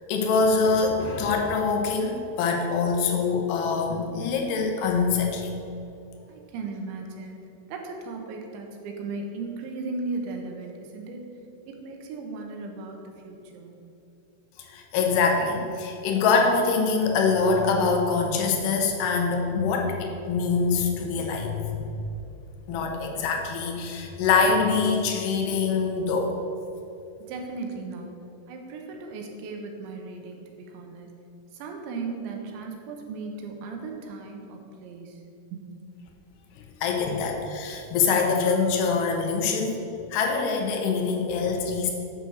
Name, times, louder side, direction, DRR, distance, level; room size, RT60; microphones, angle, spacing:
voice 1, 0.1-5.5 14.7-22.0 22.7-26.3 36.6-39.8 40.1-41.9, left 4 dB, 75° left, 2 dB, 3.0 m, -24 dB
voice 2, 6.3-7.4 7.7-11.3 11.6-13.8 27.3-28.1 28.5-31.2 31.5-35.2 35.5-35.9, right 3 dB, 85° right, 2 dB, 3.4 m, -36 dB
9.4 x 6.3 x 6.4 m, 2.8 s
omnidirectional pair, 5.2 m